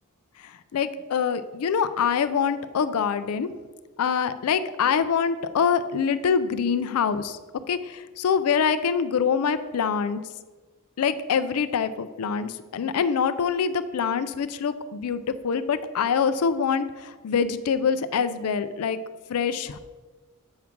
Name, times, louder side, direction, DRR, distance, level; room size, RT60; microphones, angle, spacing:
voice 1, 0.4-3.5 4.0-7.4 7.7-10.2 11.0-19.0 19.3-19.8, left 6 dB, 75° left, 12 dB, 0.4 m, -25 dB
7.2 x 3.6 x 5.9 m, 1.3 s
head